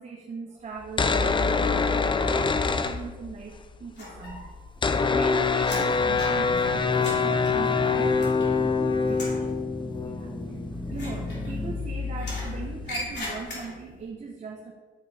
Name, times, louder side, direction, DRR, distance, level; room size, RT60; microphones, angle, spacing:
voice 1, 0.0-4.6 5.1-9.6 10.2-10.3 10.9-14.7, right 5 dB, 35° right, 1 dB, 1.0 m, -40 dB
sound 1, 0.8-3.6 3.8-3.9 4.1-13.5, left 5 dB, 25° left, 0.5 m, -26 dB
sound 2, 4.0-4.7 5.0-8.8 9.1-9.5 10.9-11.8 12.2-14.0, left 1 dB, 60° left, 3.0 m, -39 dB
sound 3, 5.9-11.8, equal, ahead, 1.4 m, -34 dB
12.0 x 4.7 x 4.9 m, 1.4 s
cardioid pair, 90°, 20 cm